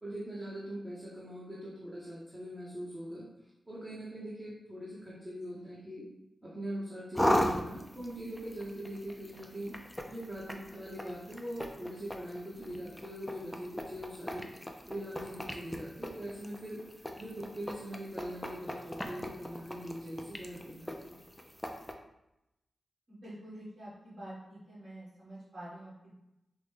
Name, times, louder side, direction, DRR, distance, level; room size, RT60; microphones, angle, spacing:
voice 1, 0.0-3.3 3.7-6.1 6.4-14.5 14.9-16.8 17.2-21.2, equal, 15° right, -8 dB, 0.8 m, -42 dB
voice 2, 5.5-5.9 23.1-26.1, right 1 dB, 55° right, -11 dB, 1.5 m, -47 dB
sound 1, 7.2-21.9, equal, 10° left, 0.3 m, -38 dB
4.7 x 2.1 x 3.2 m, 0.89 s
wide cardioid pair, 125°, 0 cm